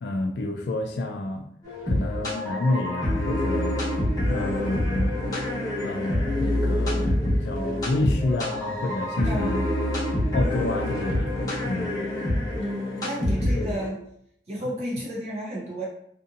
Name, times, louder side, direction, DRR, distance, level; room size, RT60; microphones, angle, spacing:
voice 1, 0.0-1.4 1.9-3.8 4.3-5.1 5.8-9.6 10.3-11.9 13.4-13.8, left 2 dB, 65° left, 4 dB, 0.3 m, -29 dB
sound 1, 1.6-13.9, left 1 dB, 20° left, 0.9 m, -26 dB
voice 2, 9.2-9.7 12.6-14.0 14.5-15.8, equal, 40° right, -4 dB, 0.6 m, -31 dB
2.6 x 2.5 x 2.6 m, 0.71 s
head